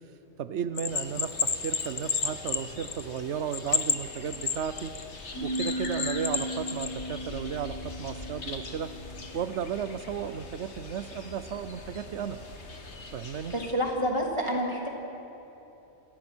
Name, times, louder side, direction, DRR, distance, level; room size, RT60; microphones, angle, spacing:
voice 1, 0.4-4.9 5.4-8.9 9.3-12.4 13.1-13.5, right 8 dB, 90° right, 11 dB, 1.0 m, -34 dB
Bell, 0.8-3.2 3.5-5.0 5.5-6.9, left 6 dB, 65° left, 1.3 m, -30 dB
sound 1, 0.9-13.7, left 3 dB, 80° left, 2.0 m, -43 dB
sound 2, 5.3-10.5, right 1 dB, 40° left, 6.7 m, -37 dB
voice 2, 13.5-14.9, equal, 25° right, -1 dB, 3.3 m, -28 dB
28.5 x 19.5 x 6.2 m, 3.0 s
omnidirectional pair, 1.1 m